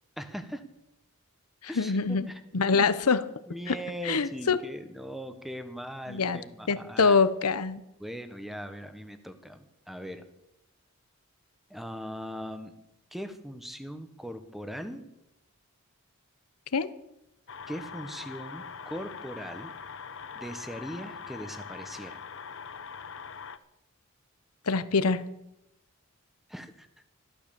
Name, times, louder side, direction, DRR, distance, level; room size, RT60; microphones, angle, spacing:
voice 1, 0.2-0.7 1.7-2.4 2.7-3.0 3.5-7.2 8.0-10.2 11.7-12.7 13.1-15.1 17.7-19.7 20.3-22.2 26.5-26.9, equal, ahead, 9 dB, 1.1 m, -40 dB
voice 2, 1.7-3.3 3.7-3.8 4.0-4.6 6.1-6.4 6.7-7.8 16.7-16.9 24.7-25.2, left 4 dB, 90° left, 14 dB, 0.9 m, -25 dB
sound 1, 17.5-23.6, left 6 dB, 55° left, 0.8 m, -42 dB
14.0 x 12.5 x 6.9 m, 0.87 s
head